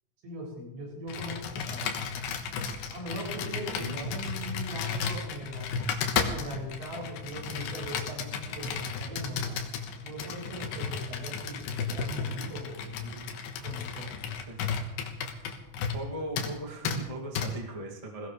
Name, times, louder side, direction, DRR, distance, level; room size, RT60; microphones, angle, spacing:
voice 1, 0.2-1.9 2.9-5.8 6.2-9.6 10.0-13.2 13.6-14.3, equal, 85° right, -4 dB, 9.5 m, -40 dB
Computer keyboard, 1.1-16.1 16.4-16.5 16.8-17.0 17.4-17.5, left 6 dB, 75° left, 3.3 m, -34 dB
voice 2, 3.7-4.1 14.5-14.6 15.9-18.3, right 1 dB, 50° right, -1 dB, 0.4 m, -38 dB
21.5 x 17.0 x 3.3 m, 1.0 s
omnidirectional pair, 5.1 m